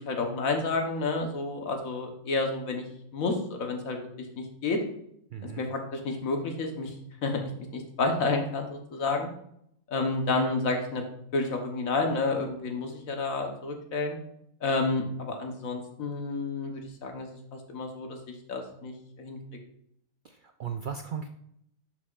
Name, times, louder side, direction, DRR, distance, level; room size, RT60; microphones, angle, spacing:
voice 1, 0.0-2.9 3.1-4.8 5.4-6.9 7.2-7.4 7.7-9.3 9.9-11.0 11.3-14.2 14.6-19.4, left 3 dB, 80° left, 3 dB, 1.6 m, -30 dB
voice 2, 5.3-5.6 20.2-21.3, right 7 dB, 75° right, 6 dB, 0.4 m, -36 dB
11.0 x 5.8 x 2.4 m, 0.74 s
omnidirectional pair, 1.4 m